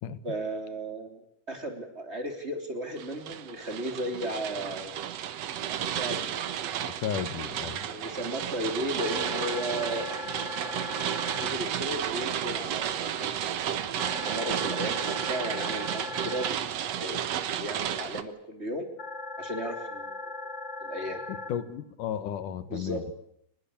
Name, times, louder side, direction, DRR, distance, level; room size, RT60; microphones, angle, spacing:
voice 1, 0.2-5.0 5.7-6.4 7.9-10.2 11.4-13.5 14.0-16.6 17.0-17.2 17.6-18.9 19.4-20.3 20.8-21.2 22.7-23.0, right 1 dB, 20° right, 5 dB, 3.5 m, -35 dB
sound 1, 3.0-18.2, right 10 dB, 65° right, 2.2 m, -32 dB
voice 2, 6.8-7.9 21.3-23.0, left 9 dB, 90° left, 13 dB, 3.0 m, -34 dB
sound 2, 7.9-17.9, left 9 dB, 5° right, 6.8 m, -54 dB
sound 3, 9.0-11.5 14.0-16.5 19.0-21.5, left 3 dB, 40° left, 3.3 m, -38 dB
24.5 x 21.0 x 8.7 m, 0.72 s
omnidirectional pair, 3.5 m